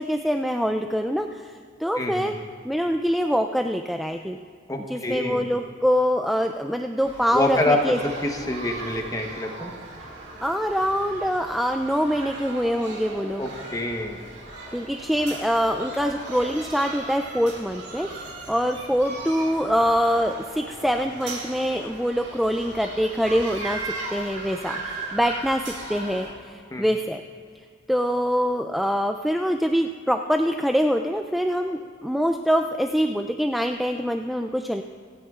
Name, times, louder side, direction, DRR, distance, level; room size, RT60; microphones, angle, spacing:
voice 1, 0.0-1.5 1.8-2.3 2.6-4.4 4.9-8.0 10.4-13.4 14.7-23.8 24.1-27.2 27.9-34.8, equal, ahead, 5 dB, 0.3 m, -24 dB
voice 2, 2.0-2.3 4.7-5.5 7.3-9.7 13.4-14.2 26.7-26.8, left 1 dB, 20° left, 2 dB, 1.0 m, -26 dB
sound 1, 7.0-26.3, right 2 dB, 65° right, 2.3 m, -38 dB
26.5 x 9.3 x 2.4 m, 2.1 s
head